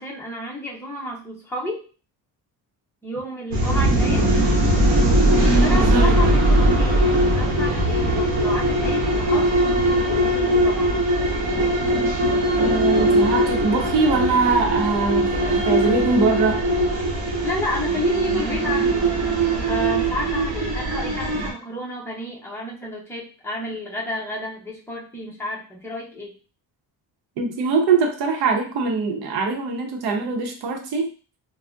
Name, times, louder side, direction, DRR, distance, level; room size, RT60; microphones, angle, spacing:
voice 1, 0.0-1.9 3.0-4.3 5.6-11.0 17.4-19.1 19.7-26.3, left 1 dB, 5° left, -3 dB, 0.6 m, -31 dB
sound 1, 3.5-21.5, right 1 dB, 45° right, 0.9 m, -20 dB
voice 2, 5.7-6.2 12.6-16.6 27.4-31.1, right 4 dB, 85° right, 2 dB, 0.7 m, -22 dB
3.3 x 2.0 x 2.5 m, 0.36 s
cardioid pair, 160°, 38 cm